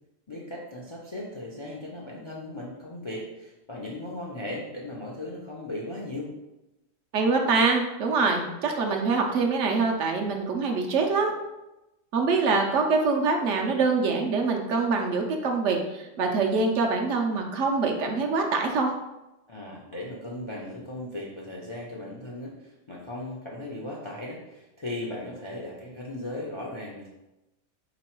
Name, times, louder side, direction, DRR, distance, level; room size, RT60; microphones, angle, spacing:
voice 1, 0.3-6.3 19.5-27.1, left 1 dB, 40° left, -3 dB, 0.4 m, -37 dB
voice 2, 7.1-11.3 12.1-18.9, right 4 dB, 65° right, 2 dB, 0.9 m, -24 dB
3.8 x 3.0 x 4.4 m, 0.97 s
omnidirectional pair, 1.4 m